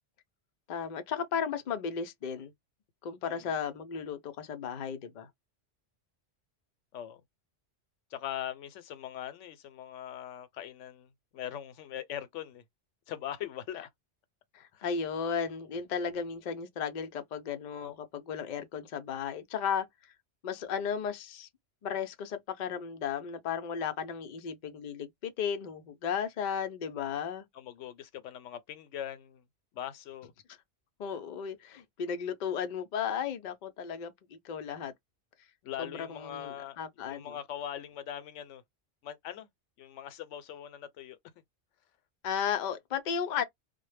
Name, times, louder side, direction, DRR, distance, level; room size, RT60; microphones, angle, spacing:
voice 1, 0.7-2.5 3.0-5.3 14.5-19.9 20.4-21.5 21.8-27.5 31.0-34.9 35.8-37.4 42.2-43.4, left 7 dB, 55° left, 0.5 m, -35 dB
voice 2, 8.1-12.6 13.1-13.9 14.7-14.8 27.5-29.4 29.7-30.3 35.6-36.8 37.1-38.6 39.0-39.5 39.8-41.2, left 10 dB, 85° left, 0.9 m, -41 dB
2.1 x 2.0 x 3.2 m
omnidirectional pair, 1.2 m